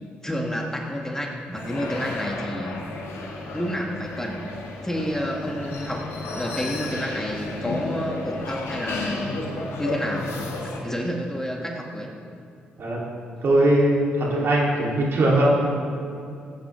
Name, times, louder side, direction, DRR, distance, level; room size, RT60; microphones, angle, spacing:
voice 1, 0.2-2.7 3.5-4.4 4.8-9.5 9.8-10.3 10.6-12.1, equal, 10° left, 1 dB, 1.7 m, -29 dB
sound 1, 1.5-10.8, left 2 dB, 70° left, 1.6 m, -33 dB
voice 2, 13.4-15.7, right 1 dB, 55° right, -3 dB, 2.7 m, -20 dB
17.0 x 9.0 x 3.3 m, 2.4 s
hypercardioid pair, 45°, 5 cm